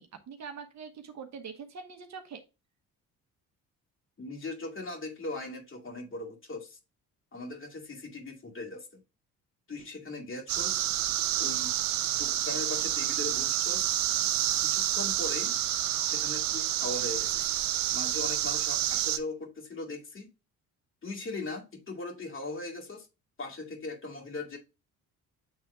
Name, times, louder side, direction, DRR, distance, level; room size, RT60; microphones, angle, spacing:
voice 1, 0.0-2.4, right 6 dB, 50° right, 1.2 m, -43 dB
voice 2, 4.2-6.8 7.3-9.0 9.7-10.9 11.4-11.8 12.1-13.9 14.6-15.5 16.0-17.5 17.9-20.3 21.0-23.1 23.4-24.6, left 2 dB, 35° left, 2.4 m, -39 dB
sound 1, 10.5-19.2, right 12 dB, 75° right, 0.7 m, -29 dB
7.6 x 3.5 x 3.5 m
supercardioid pair, 75°, 35 cm